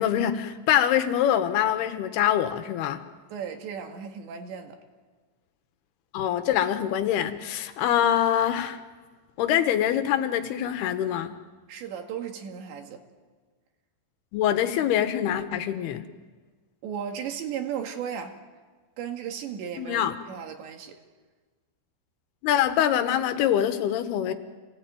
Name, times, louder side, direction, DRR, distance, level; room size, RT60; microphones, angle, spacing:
voice 1, 0.0-3.0 6.1-8.8 9.4-11.3 14.3-16.1 19.8-20.1 22.4-24.3, left 10 dB, 70° left, 2.9 m, -24 dB
voice 2, 3.3-4.8 11.7-13.0 16.8-18.4 19.0-21.0, right 8 dB, 75° right, 4.2 m, -35 dB
27.5 x 18.5 x 9.2 m
omnidirectional pair, 5.2 m